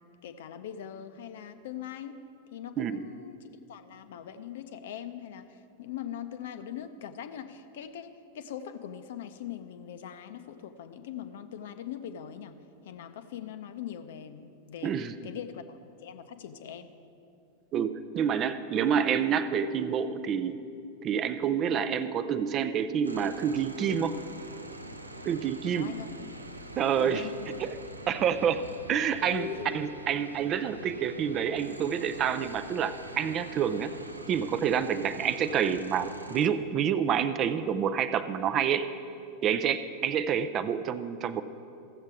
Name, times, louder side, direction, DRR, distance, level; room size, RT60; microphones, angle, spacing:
voice 1, 0.2-2.2 2.5-3.4 3.7-5.5 5.8-12.5 12.8-14.9 15.2-17.0 25.7-26.1 27.0-27.5 29.3-29.8, left 9 dB, 55° left, 10 dB, 0.6 m, -41 dB
voice 2, 2.8-3.1 14.8-15.3 17.7-20.7 21.0-24.3 25.2-26.0 26.8-27.3 27.6-27.8 28.1-28.6 28.9-33.9 34.3-38.9 39.4-41.4, right 8 dB, 30° right, 12 dB, 0.5 m, -28 dB
sound 1, 23.0-36.5, right 1 dB, 80° right, 0.6 m, -45 dB
15.0 x 7.4 x 4.8 m, 2.6 s
figure-of-eight pair, 90°, 0 cm